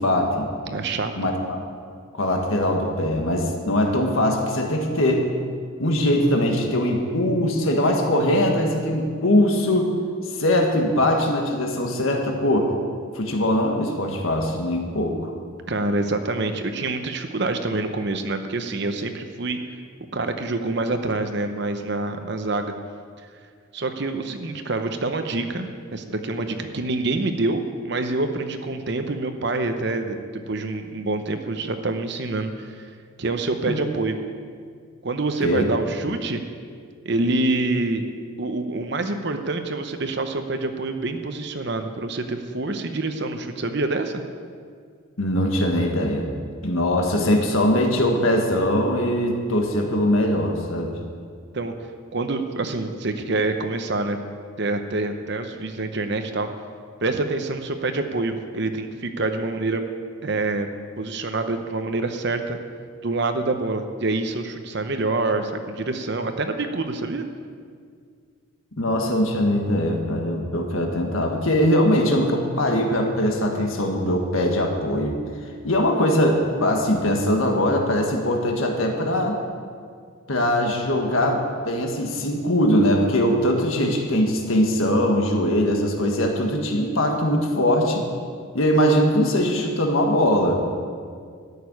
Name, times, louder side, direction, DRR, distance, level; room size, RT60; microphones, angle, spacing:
voice 1, 0.0-0.5 1.1-1.6 2.1-5.3 5.8-9.9 10.3-12.7 13.1-15.3 33.7-33.8 35.4-35.6 45.2-46.3 46.6-50.9 68.8-75.2 75.6-79.4 80.3-88.0 88.5-90.5, left 1 dB, 75° left, 2 dB, 1.6 m, -21 dB
voice 2, 0.7-1.3 15.7-19.6 20.1-22.7 23.7-30.2 30.5-32.9 33.2-34.2 35.0-36.4 37.0-38.0 38.4-44.2 51.5-51.7 52.1-54.2 54.6-56.5 57.0-59.8 60.2-60.7 61.0-62.6 63.0-67.3, right 2 dB, 50° right, 7 dB, 0.8 m, -26 dB
13.0 x 6.8 x 9.4 m, 2.1 s
head